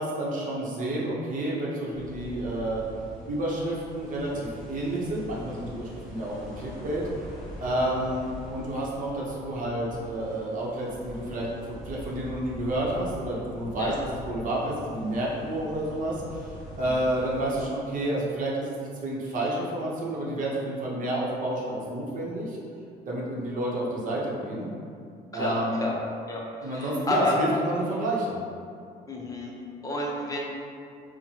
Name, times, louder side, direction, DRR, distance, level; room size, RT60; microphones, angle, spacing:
voice 1, 0.0-2.8 3.3-7.0 7.6-22.6 23.1-24.7 25.3-25.9 26.6-28.4, right 1 dB, 50° right, -4 dB, 0.9 m, -30 dB
sound 1, 1.9-17.7, equal, 5° left, 1.4 m, -43 dB
voice 2, 25.3-26.0 26.3-27.3 29.1-29.5 29.8-30.4, left 2 dB, 20° left, -3 dB, 0.6 m, -31 dB
4.5 x 2.1 x 2.8 m, 2.4 s
cardioid pair, 110°, 17 cm